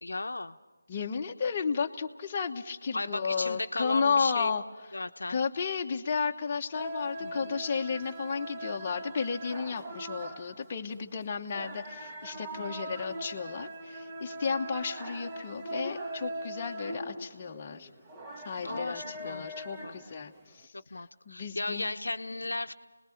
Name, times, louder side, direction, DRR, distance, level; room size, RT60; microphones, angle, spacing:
voice 1, 0.0-0.6 2.9-4.6 4.9-5.4 7.2-7.6 12.3-12.7 18.6-19.5 19.8-19.9 20.9-22.7, left 2 dB, 75° left, 8 dB, 0.9 m, -36 dB
voice 2, 0.9-4.6 5.3-17.9 18.4-20.3 21.3-21.9, left 5 dB, 25° left, 2 dB, 1.1 m, -33 dB
sound 1, 6.7-20.7, right 1 dB, 15° right, 1.3 m, -41 dB
28.0 x 20.5 x 5.2 m, 1.3 s
figure-of-eight pair, 165°, 0 cm